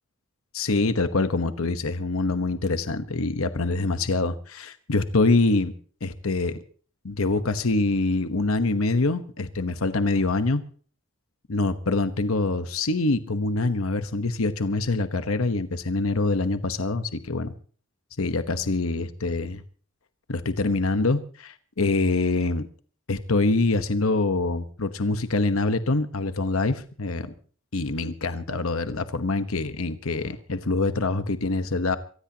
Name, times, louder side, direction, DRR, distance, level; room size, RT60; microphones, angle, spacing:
voice 1, 0.5-5.7 6.0-6.6 7.0-10.6 11.5-17.5 18.2-19.6 20.3-22.7 23.1-27.3 27.7-32.0, left 3 dB, 90° left, 10 dB, 1.1 m, -25 dB
24.0 x 16.5 x 2.9 m, 0.43 s
head